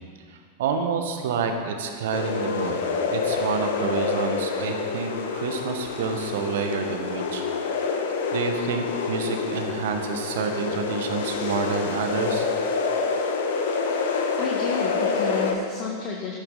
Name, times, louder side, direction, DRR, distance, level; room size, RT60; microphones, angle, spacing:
voice 1, 0.3-7.4 8.3-12.5, right 5 dB, 55° right, 5 dB, 1.6 m, -28 dB
sound 1, 2.1-15.5, left 4 dB, 55° left, 1.4 m, -27 dB
voice 2, 13.9-16.4, left 5 dB, 35° left, -1 dB, 1.6 m, -31 dB
15.5 x 13.5 x 4.1 m, 2.1 s
figure-of-eight pair, 90°, 0 cm